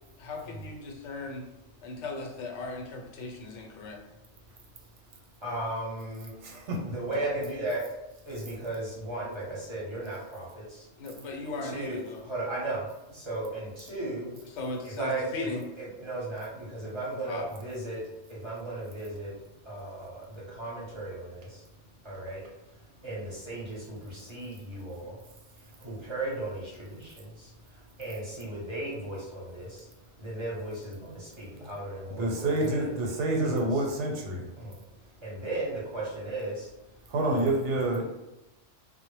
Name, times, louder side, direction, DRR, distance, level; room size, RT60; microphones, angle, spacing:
voice 1, 0.2-1.5 1.8-4.0 11.0-12.2 14.6-15.6 17.3-17.5, left 3 dB, 85° left, 1 dB, 0.9 m, -37 dB
voice 2, 5.4-6.3 6.8-7.8 8.2-10.8 11.6-12.8 13.1-14.3 14.8-18.0 18.3-19.3 19.7-20.2 20.5-21.5 22.0-22.4 23.0-25.1 25.8-27.5 28.0-29.8 30.2-33.8 34.6-34.8 35.2-36.7 37.3-37.6, right 2 dB, 30° right, -6 dB, 0.7 m, -36 dB
voice 3, 32.2-34.4 37.1-38.0, right 2 dB, 85° right, 0 dB, 0.9 m, -27 dB
2.1 x 2.0 x 3.0 m, 0.95 s
omnidirectional pair, 1.2 m